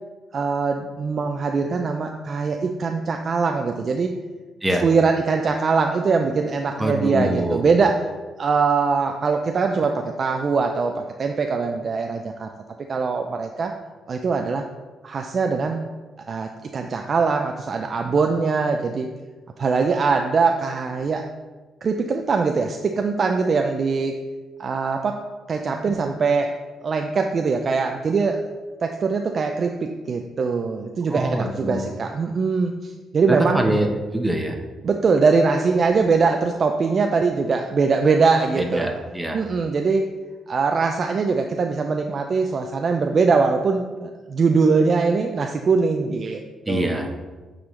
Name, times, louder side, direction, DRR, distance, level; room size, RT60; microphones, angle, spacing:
voice 1, 0.3-4.1 4.8-8.0 8.4-12.5 12.9-13.7 14.1-14.6 15.0-15.8 16.3-19.1 19.6-21.2 21.8-24.2 24.6-28.4 28.8-33.6 34.8-39.0 39.3-40.1 40.5-47.0, right 4 dB, 45° right, 4 dB, 0.4 m, -22 dB
voice 2, 6.8-7.6 25.9-26.0 31.1-31.9 33.3-33.9 34.1-34.6 38.5-39.4 46.7-47.1, right 1 dB, 10° right, 3 dB, 0.9 m, -24 dB
8.7 x 3.8 x 3.2 m, 1.3 s
cardioid pair, 90°, 0 cm